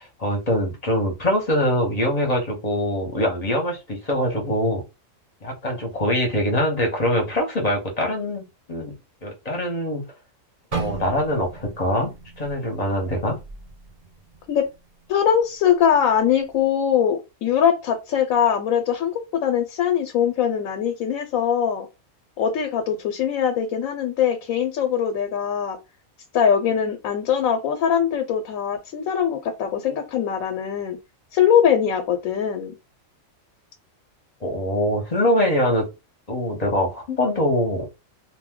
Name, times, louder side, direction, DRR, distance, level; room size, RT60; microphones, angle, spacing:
voice 1, 0.0-4.8 5.4-8.9 9.2-10.0 10.7-13.4 34.4-35.9 36.3-37.9, equal, 35° left, 1 dB, 0.8 m, -23 dB
sound 1, 10.7-14.7 15.1-15.4 16.0-16.3, right 5 dB, 45° right, 0.5 m, -36 dB
voice 2, 15.1-21.9 22.4-25.8 26.3-31.0 31.3-32.8, left 8 dB, 85° left, 5 dB, 1.0 m, -22 dB
2.6 x 2.1 x 3.6 m, 0.25 s
omnidirectional pair, 1.4 m